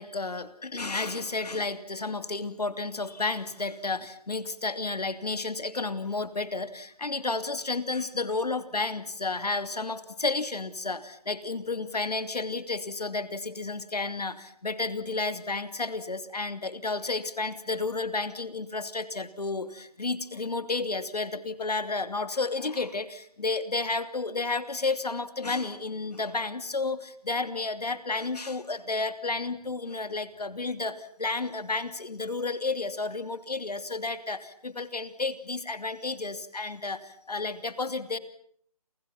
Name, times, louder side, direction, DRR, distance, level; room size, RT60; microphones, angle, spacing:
voice 1, 0.0-38.2, left 3 dB, 90° left, 12 dB, 2.9 m, -32 dB
29.5 x 29.0 x 5.9 m, 0.62 s
figure-of-eight pair, 180°, 20 cm